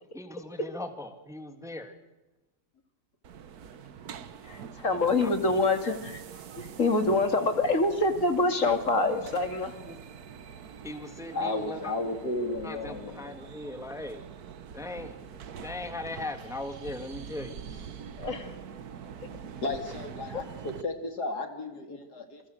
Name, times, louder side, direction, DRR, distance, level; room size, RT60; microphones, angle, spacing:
voice 1, 0.1-1.9 5.2-5.3 9.8-10.0 10.8-11.9 12.6-14.2 14.7-15.2 15.6-17.8, left 2 dB, ahead, 8 dB, 1.8 m, -39 dB
sound 1, 3.2-20.8, right 7 dB, 65° right, 1.6 m, -44 dB
voice 2, 4.4-6.2 6.6-9.7 18.2-18.6 19.2-19.3 20.3-20.4, left 2 dB, 50° left, 8 dB, 2.8 m, -26 dB
voice 3, 11.3-13.3 19.6-22.4, left 2 dB, 75° left, 6 dB, 3.3 m, -33 dB
28.0 x 23.5 x 6.6 m, 1.0 s
omnidirectional pair, 1.7 m